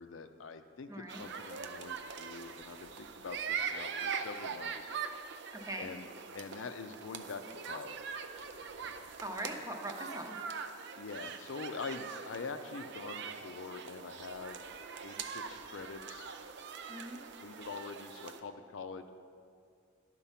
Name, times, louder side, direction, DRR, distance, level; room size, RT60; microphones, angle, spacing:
voice 1, 0.0-4.9 5.8-6.1 6.3-8.3 9.5-9.6 11.0-14.6 15.0-16.3 17.4-19.1, left 4 dB, 70° left, 9 dB, 0.5 m, -45 dB
voice 2, 0.9-1.2 5.5-5.9 9.2-10.4 16.9-17.2, right 1 dB, 15° right, 3 dB, 0.8 m, -41 dB
sound 1, 1.1-18.4, right 6 dB, 60° right, 0.5 m, -42 dB
11.5 x 4.5 x 5.7 m, 2.3 s
head